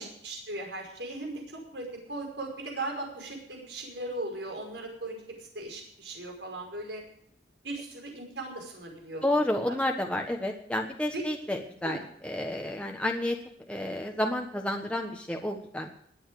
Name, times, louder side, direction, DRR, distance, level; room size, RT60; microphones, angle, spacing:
voice 1, 0.0-5.2 5.5-7.0 7.6-9.8 11.1-11.3 11.8-12.0, right 2 dB, 80° right, 1 dB, 5.4 m, -38 dB
voice 2, 9.2-13.4 13.7-15.9, left 1 dB, 5° left, 2 dB, 1.3 m, -30 dB
20.5 x 9.2 x 4.9 m, 0.70 s
head